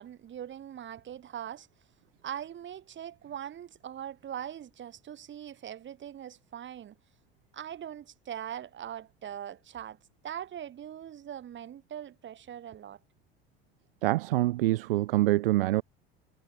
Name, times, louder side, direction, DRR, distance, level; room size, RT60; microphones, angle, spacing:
voice 1, 0.0-1.7 2.2-7.0 7.5-10.0 10.2-13.0, right 10 dB, 40° right, 7.7 m, -41 dB
voice 2, 14.0-15.8, right 17 dB, 65° right, 1.5 m, -25 dB
figure-of-eight pair, 65°, 30 cm